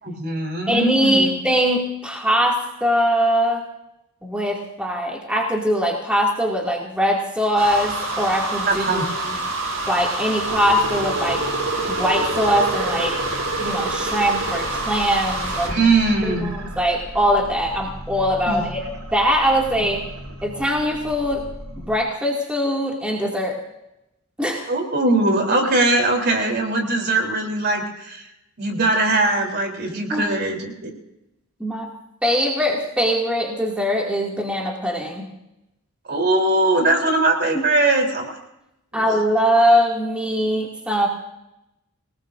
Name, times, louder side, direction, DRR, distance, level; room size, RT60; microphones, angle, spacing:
voice 1, 0.0-1.4 8.7-9.1 15.7-16.5 18.5-18.6 24.7-28.3 28.6-30.9 36.1-38.4 38.9-39.0, right 2 dB, 50° right, 3 dB, 3.7 m, -21 dB
voice 2, 0.7-3.6 4.2-9.4 9.9-11.4 11.9-13.2 13.6-15.9 16.2-18.8 19.1-20.0 20.4-21.4 21.8-23.6 24.4-24.7 30.1-30.2 31.6-31.9 32.2-35.3 38.9-41.1, equal, 5° right, -3 dB, 2.4 m, -21 dB
sound 1, 7.6-15.8, right 2 dB, 70° right, 7.3 m, -27 dB
sound 2, 10.4-22.0, right 2 dB, 85° right, 2.8 m, -32 dB
27.5 x 19.0 x 2.7 m, 0.88 s
head